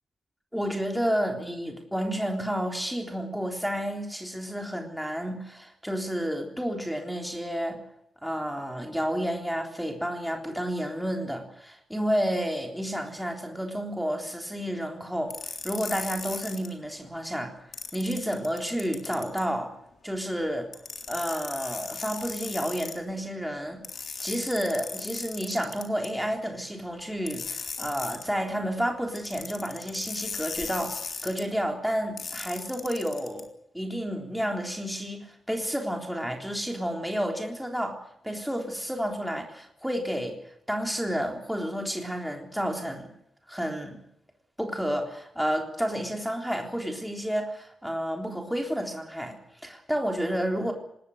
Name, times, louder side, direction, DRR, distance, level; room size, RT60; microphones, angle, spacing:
voice 1, 0.5-7.8 8.2-15.3 15.6-17.5 17.9-19.7 20.0-20.7 21.1-23.8 24.2-33.5 33.7-35.2 35.5-40.4 40.7-43.1 43.5-44.0 44.6-50.7, equal, ahead, 2 dB, 3.7 m, -30 dB
sound 1, 15.3-16.7 17.7-19.4 20.7-23.0 23.8-26.1 27.3-28.3 29.2-31.4 32.2-33.4, left 5 dB, 50° left, 3.4 m, -37 dB
25.5 x 20.0 x 6.6 m, 0.78 s
wide cardioid pair, 180°, 0 cm